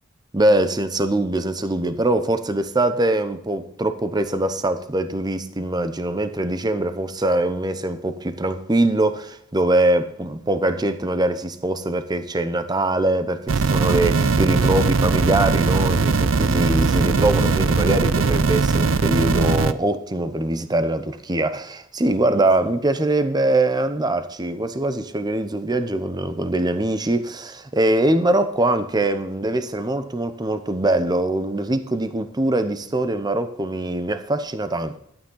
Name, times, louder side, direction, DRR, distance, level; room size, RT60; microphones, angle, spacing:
voice 1, 0.3-35.0, right 1 dB, 20° right, 0.7 m, -22 dB
sound 1, 13.5-19.7, right 4 dB, 70° right, 0.6 m, -20 dB
12.0 x 8.7 x 3.9 m
head